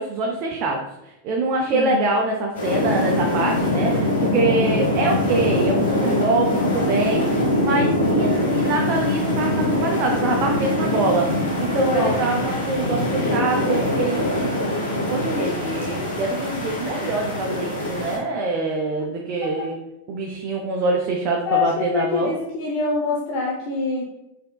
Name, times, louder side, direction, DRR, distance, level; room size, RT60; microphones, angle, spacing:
voice 1, 0.0-14.7 15.1-19.8 20.1-22.3, right 3 dB, 40° right, 0 dB, 0.5 m, -25 dB
sound 1, 2.5-18.2, left 1 dB, 65° left, 1.2 m, -23 dB
voice 2, 8.0-8.4 11.9-12.1 19.4-19.5 21.5-24.0, left 4 dB, 40° left, -3 dB, 0.6 m, -25 dB
4.3 x 3.5 x 2.2 m, 0.91 s
figure-of-eight pair, 90°, 0 cm